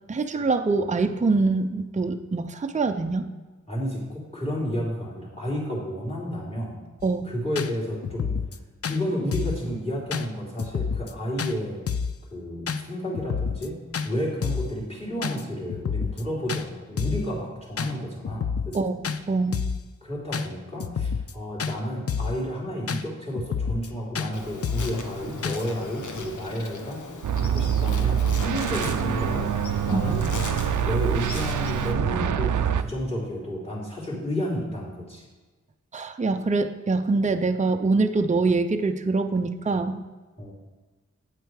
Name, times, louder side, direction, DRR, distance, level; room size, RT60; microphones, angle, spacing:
voice 1, 0.1-3.2 7.0-7.3 18.7-18.9 19.3-19.6 29.9-30.0 35.9-40.0, right 3 dB, 25° right, 6 dB, 0.5 m, -24 dB
voice 2, 3.7-6.8 7.2-8.4 8.9-11.8 12.3-13.8 14.0-18.9 20.0-27.0 27.3-29.6 29.8-30.3 30.8-35.2 40.4-40.5, equal, 20° left, -3 dB, 3.3 m, -31 dB
sound 1, 7.0-7.1 7.5-7.7 8.0-8.6 8.8-9.0 9.3-9.6 10.1-10.3 10.6-11.1 11.4-11.5 11.9-12.2 12.7-12.8 13.1-13.7 13.9-14.1 14.4-14.7 15.2-15.4 15.7-16.2 16.5-16.6 17.0-17.3 17.8-17.9 18.2-18.8 19.0-19.2 19.5-19.8 20.3-20.5 20.8-21.3 21.6-21.7 22.1-22.4 22.9-23.0 23.3-23.9 24.1-24.3 24.6-24.9 25.4-25.6, left 6 dB, 50° left, 0.5 m, -28 dB
Insect, 24.3-31.9, left 4 dB, 85° left, 1.0 m, -38 dB
sound 2, 27.2-32.8, right 8 dB, 90° right, 0.5 m, -25 dB
8.3 x 8.0 x 4.7 m, 1.3 s
wide cardioid pair, 75°, 30 cm